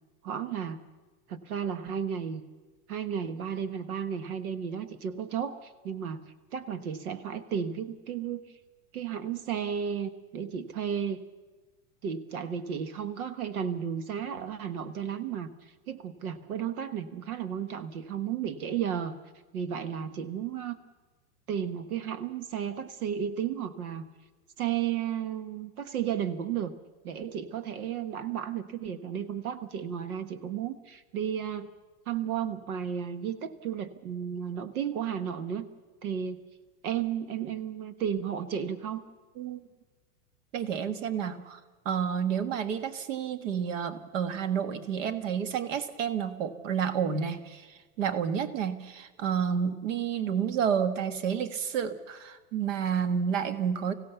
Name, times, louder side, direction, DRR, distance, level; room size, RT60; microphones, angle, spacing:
voice 1, 0.2-0.8 1.3-2.4 2.9-6.2 6.5-8.4 8.9-11.2 12.0-19.2 19.5-20.8 21.5-24.0 24.6-26.7 27.0-31.7 32.1-35.7 36.0-36.4 36.8-39.0, right 8 dB, 75° right, 11 dB, 1.4 m, -33 dB
voice 2, 40.5-41.6 41.9-53.9, right 7 dB, 55° right, 10 dB, 1.6 m, -30 dB
25.0 x 16.5 x 6.9 m, 1.3 s
supercardioid pair, 175°, 44 cm